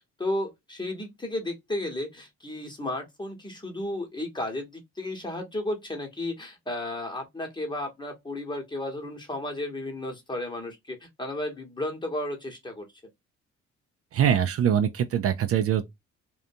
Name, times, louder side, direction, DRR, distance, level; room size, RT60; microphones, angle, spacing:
voice 1, 0.2-12.9, left 1 dB, 15° left, 1.0 m, -33 dB
voice 2, 14.1-15.9, right 9 dB, 50° right, 0.4 m, -23 dB
2.5 x 2.2 x 2.6 m
cardioid pair, 90°, 30 cm